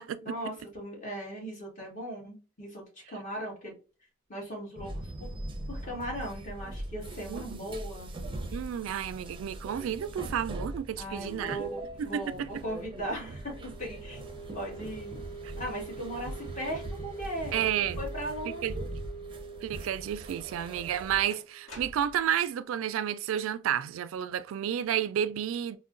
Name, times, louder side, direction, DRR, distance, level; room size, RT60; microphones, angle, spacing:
voice 1, 0.2-3.7 4.3-5.3 5.7-8.1 11.0-14.2 14.5-15.2 15.6-17.7 18.0-18.8, equal, 40° left, 1.5 m, -38 dB
sound 1, 4.8-21.3, right 1 dB, 25° right, 0.5 m, -41 dB
voice 2, 7.3-7.7 8.5-11.7 12.0-12.5 17.5-18.0 18.6-18.7 19.6-25.8, right 9 dB, 90° right, 0.3 m, -31 dB
sound 2, 10.0-22.3, right 5 dB, 10° left, 1.8 m, -47 dB
sound 3, 21.3-22.4, left 1 dB, 80° left, 0.9 m, -48 dB
4.5 x 2.1 x 2.4 m
head